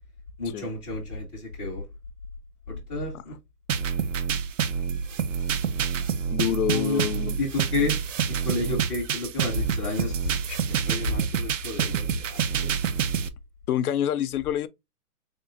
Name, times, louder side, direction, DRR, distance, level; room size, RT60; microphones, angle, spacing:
voice 1, 0.4-1.8 2.7-3.4 6.7-7.0 7.4-8.0 8.4-12.7, left 3 dB, 10° right, 0.5 m, -31 dB
sound 1, 3.7-13.3, right 7 dB, 55° right, 0.6 m, -27 dB
voice 2, 6.3-7.4 13.7-14.7, left 10 dB, 70° left, 0.6 m, -26 dB
3.8 x 3.6 x 2.6 m
hypercardioid pair, 160°, 46 cm